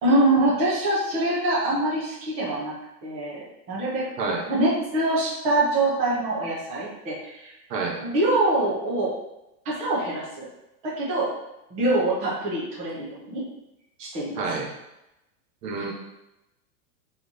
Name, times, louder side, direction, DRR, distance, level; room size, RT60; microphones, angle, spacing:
voice 1, 0.0-2.7 3.0-4.0 4.5-7.5 8.0-9.1 9.6-10.5 11.0-11.3 11.7-13.4 14.0-14.4 15.8-15.9, right 2 dB, 15° right, -7 dB, 0.7 m, -24 dB
voice 2, 7.7-8.0 14.4-14.7 15.6-15.9, right 4 dB, 80° right, 1 dB, 1.3 m, -28 dB
4.1 x 3.1 x 4.0 m, 0.91 s
supercardioid pair, 170°, 47 cm